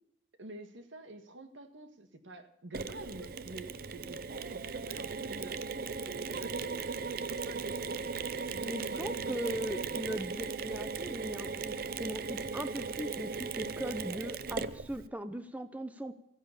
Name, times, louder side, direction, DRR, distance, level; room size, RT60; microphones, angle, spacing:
voice 1, 0.4-7.0 7.3-8.0 8.5-9.4, right 2 dB, 85° right, 8 dB, 1.9 m, -48 dB
Mechanisms, 2.7-15.1, right 5 dB, 50° right, 0.6 m, -37 dB
voice 2, 8.6-11.7 12.0-16.1, right 1 dB, 10° right, 9 dB, 0.8 m, -39 dB
15.0 x 10.5 x 8.3 m, 0.77 s
head